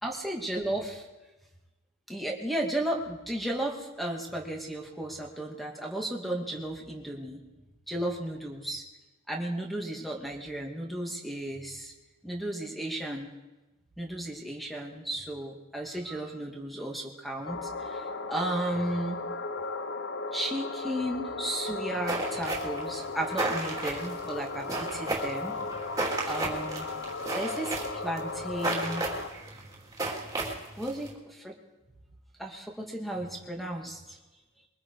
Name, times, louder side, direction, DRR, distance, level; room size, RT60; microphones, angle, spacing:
voice 1, 0.0-1.0 2.1-7.4 7.9-8.8 9.3-11.9 12.2-13.3 14.0-19.2 20.3-25.6 26.2-26.9 27.3-29.0 30.8-31.5 32.4-34.2, right 1 dB, ahead, 0 dB, 2.4 m, -34 dB
sound 1, 17.4-29.3, left 3 dB, 50° left, 0.8 m, -36 dB
sound 2, 22.1-31.1, right 2 dB, 15° right, 3.2 m, -33 dB
23.5 x 23.0 x 4.9 m, 1.1 s
head